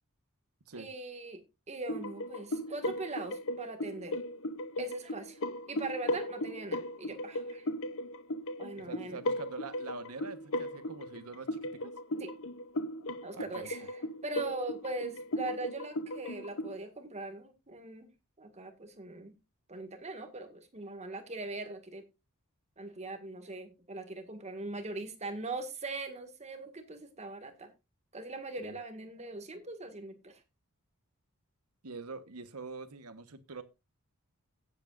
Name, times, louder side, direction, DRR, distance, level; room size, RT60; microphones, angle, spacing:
voice 1, 0.8-4.2 4.8-5.4 5.7-7.7 8.6-9.2 12.2-12.3 13.2-18.1 18.4-19.3 19.7-22.1 22.8-27.7 28.1-30.4, right 2 dB, 30° right, 1.9 m, -41 dB
sound 1, 1.9-16.8, left 1 dB, 65° left, 0.8 m, -37 dB
voice 2, 8.8-11.9 13.3-13.7 28.6-28.8 31.8-33.6, right 4 dB, 80° right, 1.2 m, -44 dB
16.5 x 8.2 x 2.5 m
head